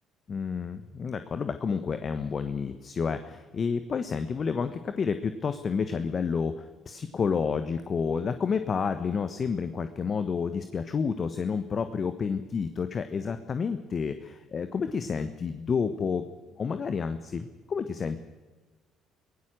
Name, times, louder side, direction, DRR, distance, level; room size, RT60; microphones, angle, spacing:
voice 1, 0.3-16.3 16.6-18.2, left 5 dB, 40° left, 10 dB, 1.2 m, -30 dB
24.5 x 17.0 x 6.4 m, 1.3 s
hypercardioid pair, 55°, 0 cm